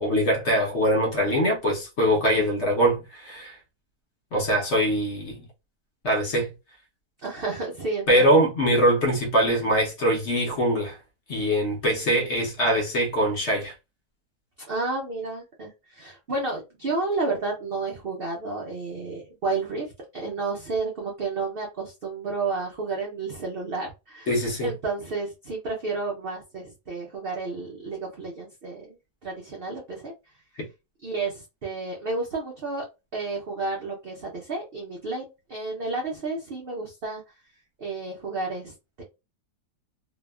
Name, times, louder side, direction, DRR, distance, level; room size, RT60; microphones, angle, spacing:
voice 1, 0.0-3.6 4.3-5.4 6.0-6.5 8.1-11.0 11.3-13.7 24.3-24.7, equal, 50° left, 0.9 m, -23 dB
voice 2, 7.2-8.3 14.6-24.3 24.6-29.0 29.2-30.1 31.0-32.8 33.1-37.2 37.8-39.0, right 3 dB, 80° right, 0.5 m, -31 dB
2.7 x 2.3 x 2.2 m
omnidirectional pair, 1.8 m